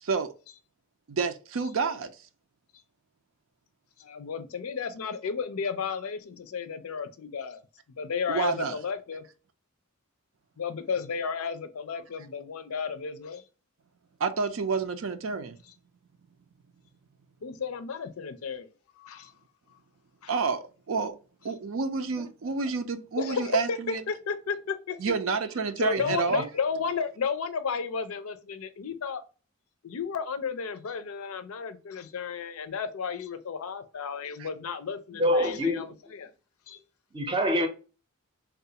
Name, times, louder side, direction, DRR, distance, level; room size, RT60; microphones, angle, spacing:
voice 1, 0.0-0.3 1.1-2.1 8.3-8.8 14.2-15.6 20.3-21.1 21.4-24.0 25.0-26.5 34.4-34.5, right 4 dB, 70° right, 0.5 m, -29 dB
voice 2, 4.0-7.6 7.9-9.2 10.6-13.4 17.4-18.7 19.0-19.3 20.2-20.3 23.2-25.1 25.8-29.2 29.8-36.3 36.7-36.8, left 6 dB, 80° left, 0.5 m, -33 dB
voice 3, 35.1-35.9 37.1-37.7, equal, 25° right, 0.6 m, -25 dB
3.4 x 2.4 x 2.8 m
head